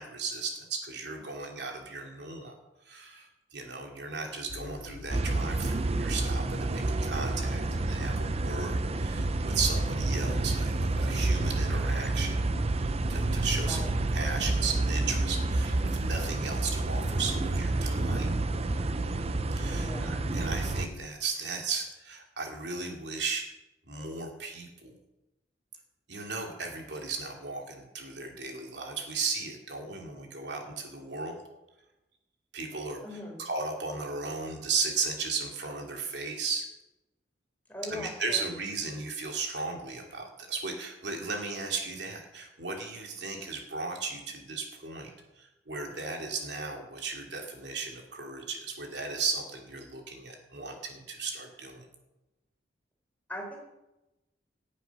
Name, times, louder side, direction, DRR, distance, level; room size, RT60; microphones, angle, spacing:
voice 1, 0.0-2.5 2.8-12.3 13.1-13.8 14.1-18.4 19.5-23.4 23.9-25.0 26.1-31.4 32.5-33.0 33.4-36.6 37.9-45.1 45.4-51.9, right 4 dB, 75° right, 1 dB, 2.9 m, -36 dB
sound 1, 4.5-21.1, left 3 dB, 55° left, 0.6 m, -43 dB
sound 2, 5.1-20.9, right 2 dB, 35° right, 0.6 m, -29 dB
voice 2, 13.5-13.9 19.7-20.1 33.0-33.4 37.7-38.5 53.3-53.6, left 1 dB, 10° left, -1 dB, 4.4 m, -40 dB
18.5 x 8.4 x 6.1 m, 0.98 s
head